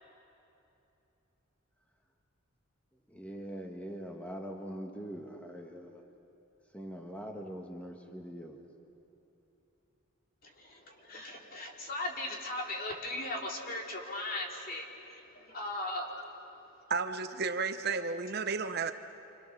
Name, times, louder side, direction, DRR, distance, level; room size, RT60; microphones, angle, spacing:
voice 1, 3.1-6.0 6.7-8.6, equal, 5° left, 2 dB, 1.6 m, -43 dB
voice 2, 10.4-16.3, left 1 dB, 45° left, 0 dB, 3.2 m, -38 dB
voice 3, 16.9-18.9, right 4 dB, 50° right, 8 dB, 0.9 m, -32 dB
28.0 x 27.0 x 6.6 m, 2.9 s
head